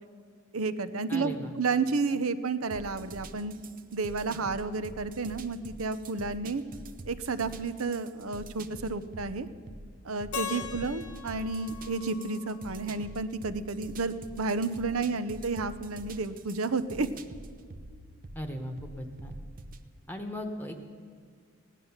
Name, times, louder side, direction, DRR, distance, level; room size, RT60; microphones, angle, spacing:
voice 1, 0.5-3.5 3.9-6.6 7.1-9.5 10.0-17.1, right 4 dB, 90° right, 13 dB, 0.8 m, -31 dB
voice 2, 1.1-1.5 4.3-4.4 10.5-10.7 18.3-19.3 20.1-20.8, left 1 dB, 10° left, 5 dB, 1.0 m, -38 dB
sound 1, 2.7-19.9, right 2 dB, 40° right, 0.7 m, -46 dB
Keyboard (musical), 10.3-13.3, left 7 dB, 90° left, 1.2 m, -41 dB
17.0 x 11.0 x 7.2 m, 2.1 s
head